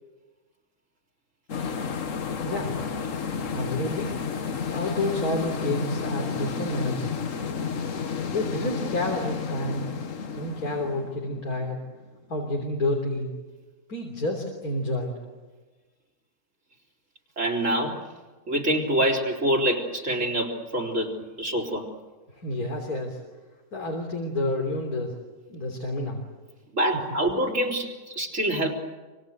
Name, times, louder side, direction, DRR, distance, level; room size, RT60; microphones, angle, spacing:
sound 1, 1.5-12.0, left 6 dB, 60° left, 1.6 m, -31 dB
voice 1, 2.4-2.8 3.5-4.1 4.7-7.2 8.3-9.9 10.3-11.8 12.3-13.3 13.9-15.1 22.3-23.2 23.7-25.1 25.5-26.2, left 1 dB, 90° left, 1 dB, 4.0 m, -29 dB
voice 2, 17.4-18.0 18.5-21.9 26.7-28.7, right 1 dB, 55° right, 0 dB, 4.2 m, -26 dB
27.0 x 25.0 x 8.0 m, 1.3 s
omnidirectional pair, 1.5 m